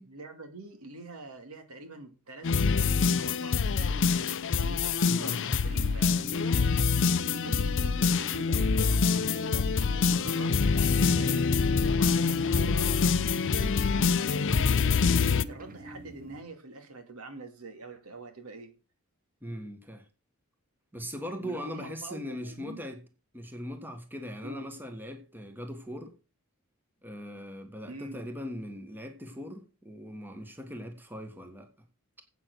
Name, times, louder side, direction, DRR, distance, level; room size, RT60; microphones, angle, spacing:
voice 1, 0.0-6.8 7.4-11.5 11.9-13.0 13.3-18.7 21.4-22.8 24.4-24.7 27.9-28.2, right 3 dB, 80° right, 2.3 m, -45 dB
sound 1, 2.4-15.4, left 5 dB, 60° left, 0.6 m, -25 dB
voice 2, 5.0-5.4 12.4-13.0 19.4-20.0 20.9-23.0 23.3-26.1 27.0-31.7, equal, 10° right, 1.5 m, -40 dB
sound 2, 5.6-16.4, right 2 dB, 40° right, 1.1 m, -45 dB
8.2 x 7.0 x 8.0 m
head